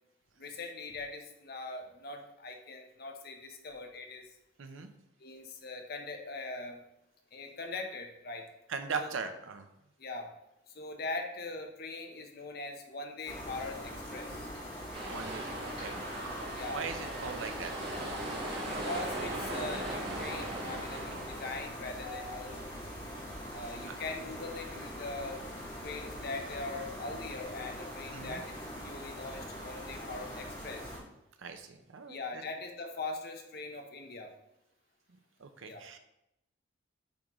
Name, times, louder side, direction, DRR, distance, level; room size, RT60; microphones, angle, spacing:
voice 1, 0.4-4.2 5.2-6.8 7.3-8.4 9.0-9.1 10.0-10.3 10.7-14.5 16.5-16.8 18.6-22.7 23.5-25.4 25.8-28.4 28.8-30.9 32.1-34.3 35.6-35.8, left 3 dB, 50° left, 3 dB, 0.7 m, -41 dB
voice 2, 4.6-4.9 8.7-9.6 15.1-16.0 16.7-17.7 28.1-28.4 31.4-32.4 35.4-36.0, right 5 dB, 75° right, 8 dB, 0.6 m, -39 dB
sound 1, 13.3-31.0, equal, 20° left, 2.3 m, -42 dB
sound 2, 14.9-21.6, right 1 dB, 50° right, 1.6 m, -39 dB
8.6 x 3.7 x 3.0 m, 0.86 s
head